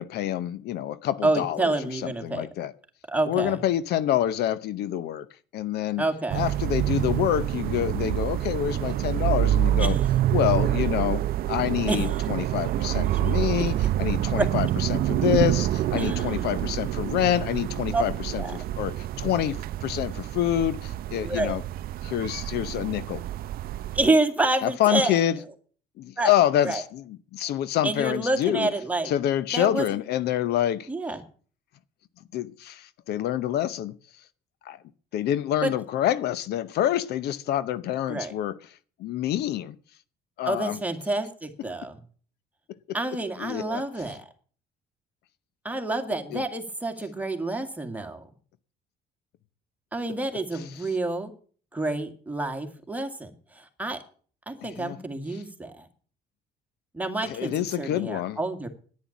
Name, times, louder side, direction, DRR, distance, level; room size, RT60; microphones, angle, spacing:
voice 1, 0.0-2.7 3.3-5.3 5.5-6.0 6.3-10.0 10.3-21.6 22.0-23.2 24.6-25.4 26.0-28.7 29.0-30.9 32.3-34.2 34.6-34.8 35.1-39.8 40.4-40.8 43.4-43.8 46.3-46.4 50.5-50.9 54.6-55.0 55.3-55.4 57.2-58.4, left 12 dB, 75° left, 0.8 m, -27 dB
voice 2, 1.2-2.5 3.1-3.6 6.0-6.4 9.8-9.9 11.9-12.1 14.4-14.5 16.0-16.3 17.9-18.0 18.4-18.5 21.2-21.6 23.9-25.2 26.2-26.3 26.6-26.8 27.8-29.1 29.5-29.8 30.9-31.2 35.6-35.7 38.1-38.3 40.5-42.0 42.9-44.2 45.6-48.3 49.9-51.3 51.7-53.3 53.6-54.0 54.5-55.9 56.9-58.7, right 2 dB, 10° right, 2.1 m, -28 dB
sound 1, 6.3-24.1, right 13 dB, 60° right, 0.5 m, -27 dB
10.5 x 9.8 x 7.2 m
cardioid pair, 110°, 17 cm